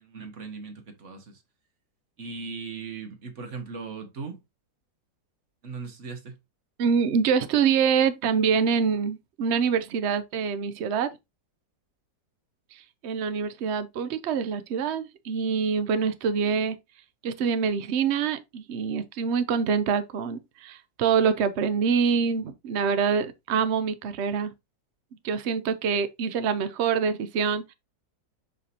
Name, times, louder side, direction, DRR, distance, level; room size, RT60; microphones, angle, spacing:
voice 1, 0.0-1.4 2.2-4.4 5.6-6.3, right 4 dB, 45° right, 1.6 m, -38 dB
voice 2, 6.8-11.2 12.7-16.8 17.2-24.5 25.2-27.7, right 6 dB, 80° right, 0.6 m, -25 dB
6.9 x 5.1 x 2.8 m
omnidirectional pair, 2.0 m